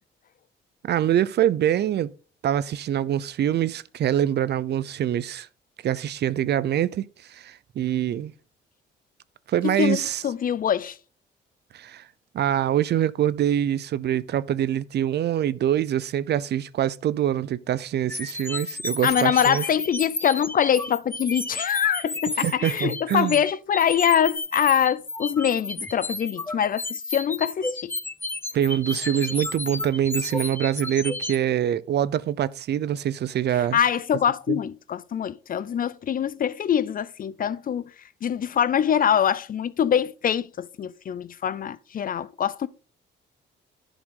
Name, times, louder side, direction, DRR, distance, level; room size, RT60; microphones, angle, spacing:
voice 1, 0.8-2.1 2.4-5.5 5.8-7.1 7.3-8.3 9.5-10.2 11.7-12.0 12.3-19.6 22.4-23.4 28.5-33.8 34.5-34.6, right 10 dB, 55° right, 0.5 m, -24 dB
voice 2, 9.6-11.0 19.0-27.9 33.7-37.8 38.2-42.7, left 9 dB, 45° left, 0.5 m, -24 dB
sound 1, 18.1-31.4, left 2 dB, 10° left, 0.7 m, -32 dB
11.0 x 5.1 x 3.8 m
cardioid pair, 90°, 20 cm